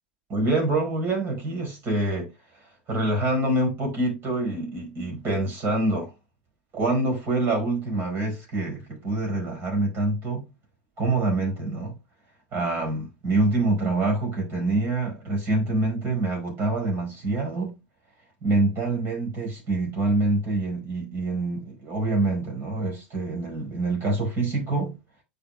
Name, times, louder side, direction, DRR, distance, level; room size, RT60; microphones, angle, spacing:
voice 1, 0.3-2.3 2.9-6.1 6.7-10.5 11.0-11.9 12.5-17.8 18.4-25.0, right 2 dB, 40° right, 4.8 m, -26 dB
9.6 x 5.3 x 2.3 m
hypercardioid pair, 80°, 5 cm